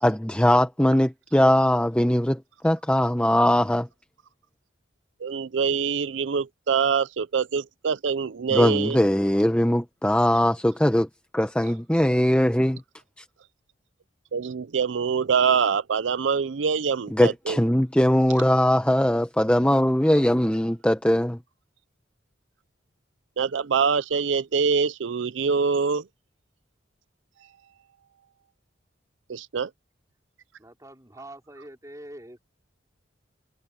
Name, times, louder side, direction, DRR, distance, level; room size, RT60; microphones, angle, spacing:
voice 1, 0.0-3.9 8.5-12.8 13.2-13.3 17.1-21.4, equal, 5° left, 0.9 m, -21 dB
voice 2, 5.2-9.0 14.3-17.6 23.4-26.1 29.3-29.7, right 6 dB, 75° right, 0.5 m, -24 dB
voice 3, 30.6-32.4, right 1 dB, 15° right, 4.7 m, -44 dB
head